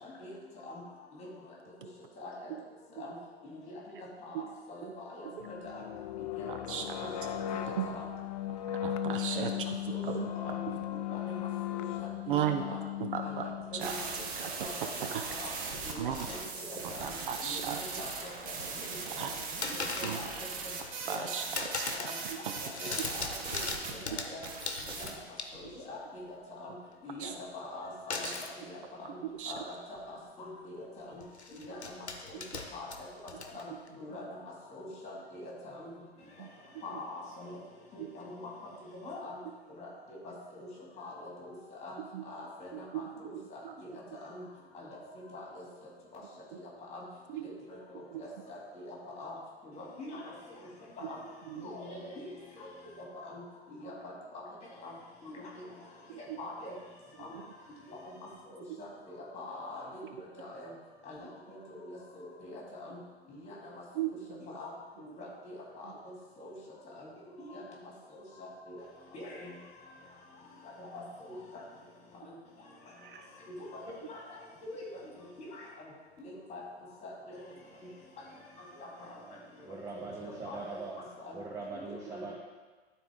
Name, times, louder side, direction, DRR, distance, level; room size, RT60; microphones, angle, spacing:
voice 1, 0.0-0.3 0.6-0.8 1.1-1.3 2.2-2.5 3.0-3.1 3.4-5.8 6.3-6.5 6.9-8.1 9.3-10.0 10.3-10.6 10.9-11.4 11.7-14.1 14.4-14.7 15.0-15.5 15.8-17.1 17.4-18.3 18.6-19.3 19.6-20.5 21.1-21.3 21.7-24.4 25.0-25.1 25.5-26.3 26.6-26.7 27.0-28.3 28.6-29.2 29.5-29.8 30.1-31.2 31.5-31.9 32.3-32.4 32.7-33.1 33.5-33.7 33.9-34.4 34.7-35.9 36.8-37.6 37.9-38.5 38.9-39.4 39.8-40.7 41.0-42.0 42.3-43.9 44.1-44.4 44.7-44.9 45.3-45.6 46.1-46.2 46.9-47.0 47.3-49.4 49.7-50.3 51.0-51.2 51.5-52.3 52.6-52.7 53.2-53.4 53.7-54.1 54.8-54.9 55.2-55.6 56.4-56.7 57.2-57.3 57.9-58.0 58.5-60.7 61.1-63.0 63.3-63.5 64.4-64.7 65.0-66.5 67.0-67.1 67.4-67.6 68.1-68.8 69.1-69.5 70.8-71.6 72.3-72.4 73.7-74.9 75.2-75.9 76.2-76.6 77.0-77.4 78.8-79.1 79.9-80.6 81.2-81.4 81.9-82.3, left 2 dB, 20° left, -3 dB, 2.5 m, -44 dB
sound 1, 5.4-14.2, left 13 dB, 40° left, 0.4 m, -37 dB
voice 2, 6.5-7.1 7.8-7.9 8.8-9.5 10.0-10.3 12.3-12.6 13.0-13.5 13.7-14.0 14.4-14.5 15.1-15.2 16.0-16.3 17.0-18.0 19.2-19.3 20.0-20.3 21.1-21.9 22.2-22.4 24.1-24.2 25.6-25.7 27.2-27.3 28.2-28.3 29.2-29.5 36.4-36.5 38.0-38.1 42.1-42.3 42.7-43.0 43.3-44.0 47.3-47.4 48.1-48.2 51.5-51.7 56.1-56.4 57.3-57.4 58.7-58.8 64.0-64.1 73.0-73.3, right 9 dB, 55° right, 6 dB, 0.6 m, -36 dB
sound 2, 13.8-23.9 24.4-25.2, right 4 dB, 25° right, 1.0 m, -39 dB
sound 3, 16.1-16.7 17.2-18.1 18.4-18.9 19.6-20.3 20.8-21.2 21.6-22.2 22.5-25.9 28.1-28.6 29.5-29.6 30.0-30.1 31.2-33.9, left 4 dB, 80° left, 0.9 m, -40 dB
voice 3, 79.6-81.1 81.3-82.3, right 3 dB, 10° right, -1 dB, 0.6 m, -41 dB
12.5 x 4.2 x 3.7 m, 1.3 s
figure-of-eight pair, 105°, 32 cm